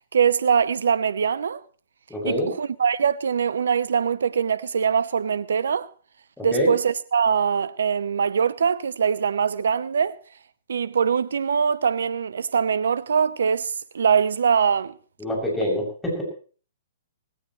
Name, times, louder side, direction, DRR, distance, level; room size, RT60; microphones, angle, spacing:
voice 1, 0.1-1.6 2.2-5.9 6.4-10.2 10.7-14.9, right 7 dB, 70° right, 0.8 m, -22 dB
voice 2, 2.1-2.5 6.4-6.7 15.2-16.2, equal, 5° left, 7.0 m, -25 dB
18.5 x 17.0 x 3.1 m
figure-of-eight pair, 120°, 0 cm